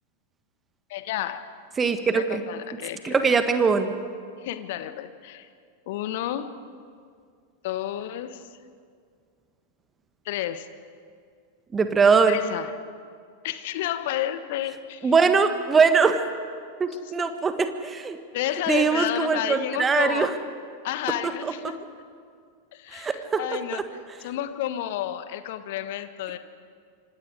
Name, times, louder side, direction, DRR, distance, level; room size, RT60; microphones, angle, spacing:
voice 1, 0.9-1.4 2.1-3.3 4.4-5.5 5.9-6.6 7.6-8.5 10.2-10.7 12.3-12.7 13.4-15.1 16.9-17.1 18.3-20.3 20.8-21.8 22.7-23.8 24.2-26.4, left 12 dB, 50° left, 11 dB, 1.3 m, -31 dB
voice 2, 1.8-2.4 3.0-3.9 11.7-12.4 15.0-16.2 16.8-18.2 18.7-20.3 21.4-21.5 22.9-23.4 23.7-23.8, right 5 dB, 20° right, 9 dB, 1.6 m, -21 dB
26.5 x 26.0 x 5.0 m, 2.2 s
figure-of-eight pair, 90°, 0 cm